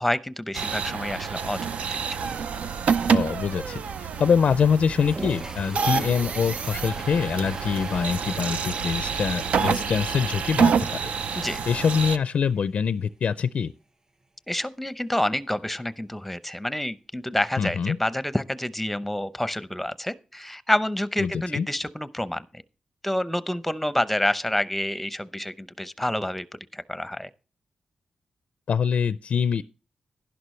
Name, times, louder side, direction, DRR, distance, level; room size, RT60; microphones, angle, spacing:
voice 1, 0.0-2.2 11.4-11.6 14.5-22.6 23.0-26.5 26.7-27.3, left 1 dB, 5° left, 0.7 m, -28 dB
sound 1, 0.5-12.2, right 6 dB, 80° right, 0.6 m, -27 dB
voice 2, 3.1-3.8 4.2-10.7 11.3-11.4 11.7-13.7 17.6-18.0 21.2-21.7 28.7-29.7, left 6 dB, 70° left, 0.4 m, -24 dB
Toilet flush, 4.9-11.6 11.9-12.0 12.2-12.3 12.6-12.7 15.2-15.3 16.6-16.7, right 2 dB, 30° right, 5.8 m, -41 dB
11.5 x 11.0 x 3.2 m
cardioid pair, 90°, 2 cm